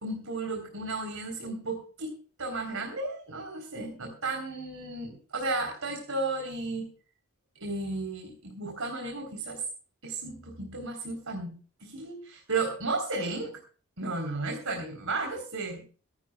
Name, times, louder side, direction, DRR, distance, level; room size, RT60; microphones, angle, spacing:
voice 1, 0.0-6.9 7.6-9.6 10.0-13.6 14.0-15.9, right 3 dB, 70° right, 2 dB, 3.9 m, -34 dB
25.5 x 11.5 x 2.4 m, 0.39 s
head